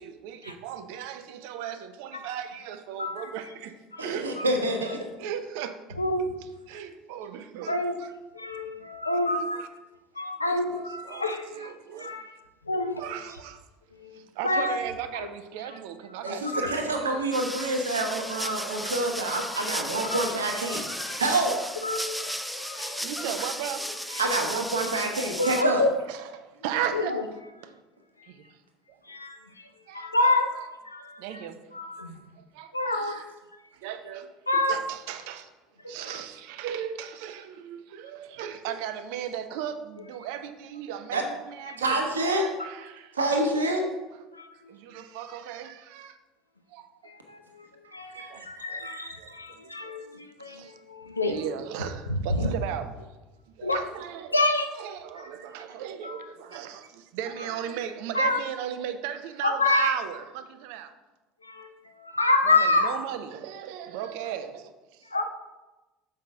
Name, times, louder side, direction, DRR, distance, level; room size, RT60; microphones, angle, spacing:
voice 1, 0.0-3.7 4.0-4.5 5.2-6.0 6.7-8.1 9.3-9.7 10.5-12.2 13.0-13.6 14.1-17.2 18.4-18.5 23.0-23.8 25.6-25.7 26.1-26.3 26.5-27.1 28.3-28.5 29.9-30.1 31.2-31.6 32.4-33.2 33.8-34.3 34.5-35.5 35.9-42.0 42.2-43.4 44.7-46.2 46.7-47.1 48.1-50.1 50.4-50.7 51.3-53.1 53.6-54.3 54.8-60.9 62.5-65.0, right 9 dB, 60° right, 9 dB, 0.5 m, -37 dB
voice 2, 3.0-3.3 3.9-4.1 4.4-4.5 5.9-6.3 7.7-8.0 8.3-9.6 10.2-11.7 12.0-12.3 12.7-13.0 13.9-14.8 15.1-15.3 15.6-15.8 16.5-16.8 20.1-20.3 21.8-22.2 22.8-23.1 24.1-24.3 25.4-25.9 26.9-27.2 29.0-31.5 31.7-32.2 32.7-33.2 34.5-34.8 35.8-36.2 41.7-41.8 44.3-44.8 47.0-51.4 52.1-52.5 53.6-53.8 54.3-54.7 55.2-55.3 56.0-56.3 58.1-58.5 59.4-59.9 61.4-63.0 65.0-65.2, left 2 dB, 85° left, 5 dB, 0.6 m, -28 dB
voice 3, 4.0-5.1 16.2-20.8 21.2-21.5 24.2-25.8 41.1-41.2 41.8-42.4 43.1-43.8 48.1-48.5, right 2 dB, 80° right, 3 dB, 0.9 m, -27 dB
sound 1, 17.0-25.2, left 3 dB, 40° left, 1.4 m, -44 dB
sound 2, 17.3-25.6, equal, ahead, 0.4 m, -35 dB
6.5 x 5.6 x 3.6 m, 1.1 s
figure-of-eight pair, 65°, 0 cm